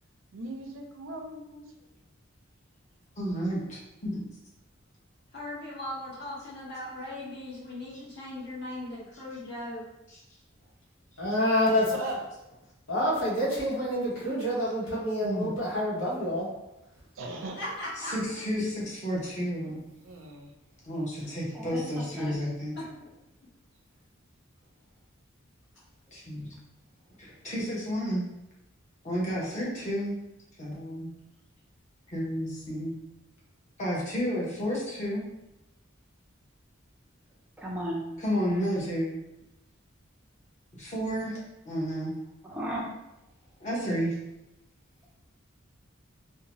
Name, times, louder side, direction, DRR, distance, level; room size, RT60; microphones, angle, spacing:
voice 1, 0.3-1.7 11.9-12.3 17.2-17.6 19.6-19.8 20.0-20.5, right 2 dB, 80° right, 3 dB, 0.5 m, -38 dB
voice 2, 3.2-4.2 15.2-15.5 18.0-19.8 20.8-22.8 26.1-26.5 27.2-28.3 29.0-30.2 30.6-31.1 32.1-32.9 33.8-35.2 38.2-39.1 40.8-41.4 41.6-42.1 43.6-44.2, equal, 35° left, -6 dB, 0.9 m, -31 dB
voice 3, 5.3-9.8 17.5-18.1 18.8-18.9 22.7-22.8, left 1 dB, 55° left, -7 dB, 1.1 m, -38 dB
voice 4, 11.2-11.9 12.9-16.5, left 1 dB, 85° left, -6 dB, 1.1 m, -27 dB
voice 5, 21.5-22.4 37.6-38.1 42.4-42.9, equal, 5° right, -4 dB, 0.3 m, -35 dB
2.7 x 2.1 x 2.9 m, 0.91 s
head